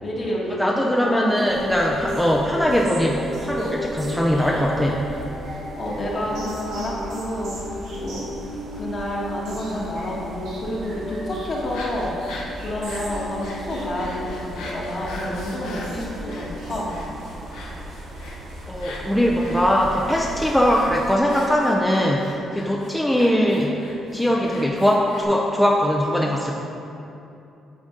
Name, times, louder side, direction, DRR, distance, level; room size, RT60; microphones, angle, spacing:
voice 1, 0.0-0.7 1.0-1.3 5.8-12.1 12.6-14.3 14.6-16.9, left 1 dB, 45° left, -4 dB, 1.5 m, -29 dB
voice 2, 0.6-5.0 18.7-23.8 24.1-26.5, equal, 5° left, -2 dB, 0.5 m, -21 dB
sound 1, 0.9-17.4, equal, 90° right, 1.5 m, -36 dB
sound 2, 1.5-21.2, equal, 60° right, 0.8 m, -39 dB
sound 3, 11.6-25.2, left 2 dB, 90° left, 0.8 m, -40 dB
8.6 x 4.0 x 3.8 m, 2.8 s
cardioid pair, 90°, 0 cm